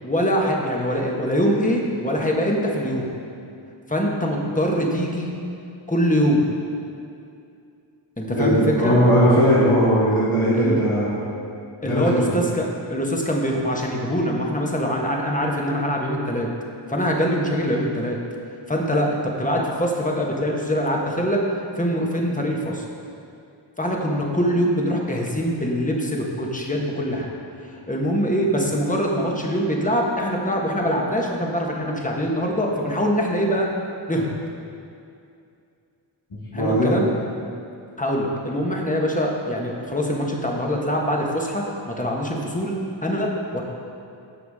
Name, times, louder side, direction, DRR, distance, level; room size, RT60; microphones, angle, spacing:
voice 1, 0.0-3.1 3.9-5.3 5.9-6.4 8.2-9.0 10.5-10.8 11.8-16.5 16.9-18.2 18.7-21.4 21.8-22.8 23.8-27.3 27.7-33.7 34.1-34.3 36.5-37.1 38.0-41.6 42.0-42.8 43.0-43.6, equal, 15° left, -1 dB, 1.4 m, -23 dB
voice 2, 8.3-11.1 11.8-12.3 36.5-37.0, equal, 90° left, -10 dB, 2.5 m, -18 dB
16.0 x 6.1 x 3.7 m, 2.5 s
wide cardioid pair, 65°, 48 cm